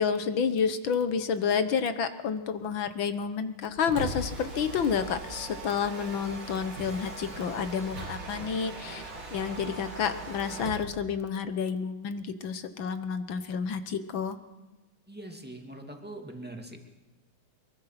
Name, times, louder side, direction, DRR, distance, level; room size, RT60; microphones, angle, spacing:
voice 1, 0.0-9.0 9.3-14.4, left 6 dB, 65° left, 10 dB, 1.8 m, -30 dB
Mechanisms, 3.6-10.9, right 2 dB, 65° right, 3.4 m, -40 dB
voice 2, 3.8-4.2 15.1-16.8, right 1 dB, 5° right, 2 dB, 2.3 m, -43 dB
24.0 x 22.5 x 5.9 m, 1.1 s
omnidirectional pair, 2.4 m